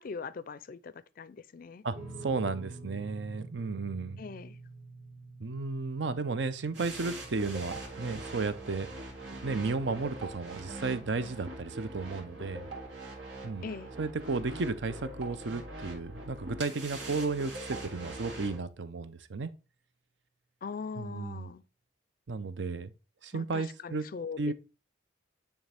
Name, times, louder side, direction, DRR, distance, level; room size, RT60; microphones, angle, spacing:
voice 1, 0.0-1.8 4.2-4.6 13.6-13.9 20.6-21.6 23.3-24.5, left 5 dB, 50° left, 0.4 m, -41 dB
sound 1, 1.9-14.5, right 2 dB, 50° right, 2.3 m, -50 dB
voice 2, 2.2-4.2 5.4-8.9 9.4-12.7 13.4-13.6 14.0-19.5 21.0-21.5 22.3-22.9 23.2-24.0 24.4-24.5, right 3 dB, 65° right, 0.6 m, -33 dB
sound 2, 6.7-18.6, right 2 dB, 85° right, 2.4 m, -42 dB
8.9 x 3.5 x 3.4 m
head